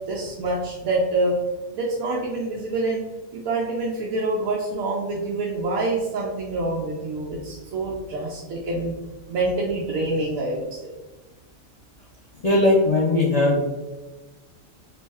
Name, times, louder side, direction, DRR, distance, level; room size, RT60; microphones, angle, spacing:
voice 1, 0.1-1.4 1.7-3.0 3.3-8.9 9.3-10.9, right 2 dB, 90° right, -3 dB, 1.1 m, -26 dB
voice 2, 12.4-13.7, left 2 dB, 50° left, -4 dB, 0.4 m, -19 dB
3.4 x 3.1 x 3.4 m, 1.1 s
omnidirectional pair, 1.4 m